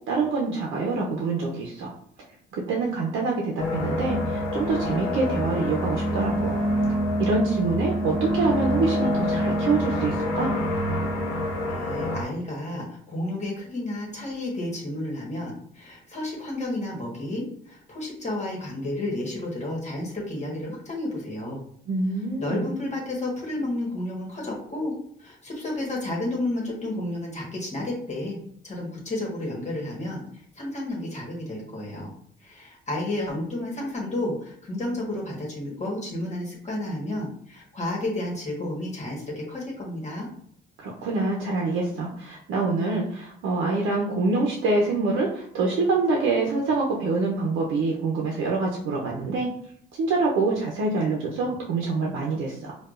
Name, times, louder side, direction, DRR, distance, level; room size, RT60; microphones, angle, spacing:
voice 1, 0.1-1.9 2.5-6.6 7.2-10.6 21.9-22.7 40.8-49.5 50.0-52.7, right 3 dB, 85° right, -2 dB, 0.6 m, -25 dB
sound 1, 3.6-12.2, equal, 85° left, 0.9 m, -26 dB
voice 2, 11.6-21.6 22.4-24.9 25.2-28.4 28.6-32.1 32.4-40.3, left 1 dB, 35° left, -2 dB, 1.3 m, -31 dB
4.6 x 2.3 x 2.4 m, 0.64 s
cardioid pair, 90°, 20 cm